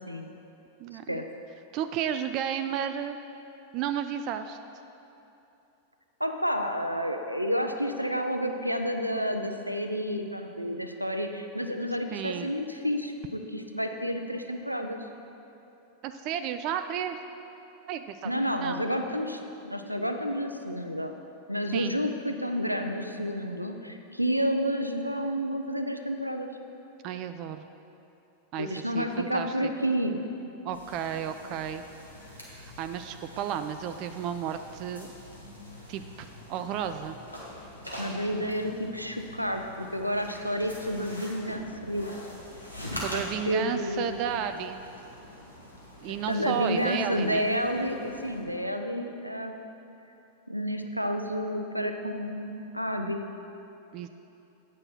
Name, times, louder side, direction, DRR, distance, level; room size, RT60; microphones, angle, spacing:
voice 1, 0.8-1.2 1.7-3.2 3.7-4.6 12.1-12.5 16.0-17.2 17.9-18.3 18.6-18.8 21.7-21.9 27.0-27.6 28.5-29.7 30.6-31.8 32.3-35.1 35.9-37.2 43.0-44.8 46.0-47.5 53.9-54.1, right 9 dB, 40° right, 9 dB, 0.3 m, -33 dB
voice 2, 6.2-15.0 18.2-21.1 21.5-26.5 28.6-30.2 38.0-42.1 43.1-44.2 46.1-49.6 50.5-53.2, equal, 90° right, 5 dB, 0.5 m, -30 dB
sound 1, 30.7-48.4, left 1 dB, 85° left, 1.6 m, -44 dB
8.8 x 6.2 x 5.7 m, 2.9 s
figure-of-eight pair, 90°, 0 cm